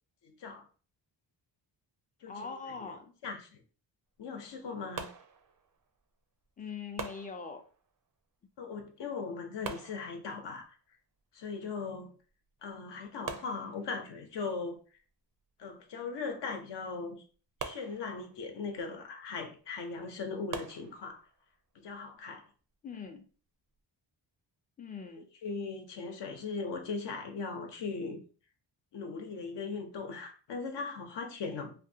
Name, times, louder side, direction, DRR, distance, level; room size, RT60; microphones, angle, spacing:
voice 1, 0.2-0.6 2.2-2.4 2.8-2.9 3.2-3.6 4.2-5.1 8.6-10.8 11.3-12.1 12.6-14.8 15.6-17.2 17.6-21.2 21.7-22.5 25.4-28.2 28.9-31.7, left 4 dB, 65° left, 0.7 m, -39 dB
voice 2, 2.3-3.1 6.6-7.6 22.8-23.2 24.8-25.3, left 5 dB, 20° left, 0.4 m, -42 dB
sound 1, 5.0-6.0 7.0-8.0 9.6-10.7 12.3-12.4 12.7-12.8 13.3-14.3 17.6-18.6 20.5-21.4, right 6 dB, 45° right, 0.5 m, -44 dB
2.6 x 2.5 x 2.7 m
wide cardioid pair, 125°, 45 cm